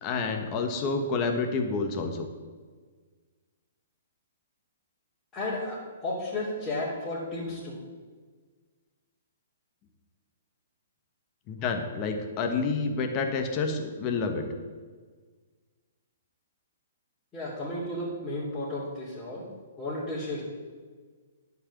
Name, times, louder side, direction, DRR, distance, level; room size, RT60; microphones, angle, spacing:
voice 1, 0.0-2.3 11.5-14.4, left 4 dB, 30° left, 4 dB, 1.2 m, -29 dB
voice 2, 5.3-7.8 17.3-19.4 19.8-20.4, left 2 dB, 15° left, -11 dB, 2.9 m, -33 dB
10.0 x 4.7 x 7.2 m, 1.5 s
hypercardioid pair, 135°, 0 cm